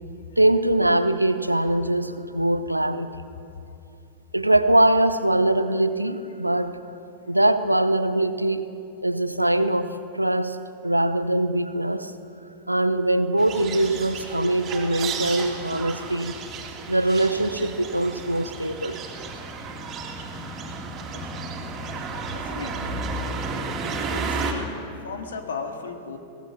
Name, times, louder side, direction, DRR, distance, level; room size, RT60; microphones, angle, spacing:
voice 1, 0.4-3.1 4.3-6.8 7.3-8.7 9.0-10.6 10.8-12.1 12.7-16.4 16.9-19.0, right 1 dB, 85° right, 12 dB, 0.8 m, -22 dB
sound 1, 13.4-24.5, right 4 dB, 30° right, 3.2 m, -33 dB
voice 2, 22.3-23.0 24.1-26.2, left 5 dB, 65° left, 5 dB, 2.2 m, -36 dB
22.5 x 19.0 x 6.2 m, 2.6 s
figure-of-eight pair, 90°, 0 cm